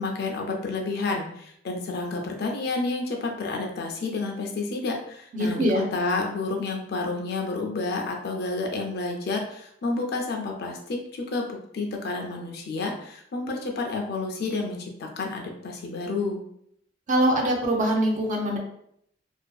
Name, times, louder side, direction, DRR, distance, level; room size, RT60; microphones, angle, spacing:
voice 1, 0.0-16.4, left 3 dB, 55° left, 1 dB, 0.4 m, -30 dB
voice 2, 5.3-5.8 17.1-18.6, right 1 dB, 40° right, 0 dB, 0.5 m, -23 dB
2.5 x 2.3 x 2.2 m, 0.71 s
head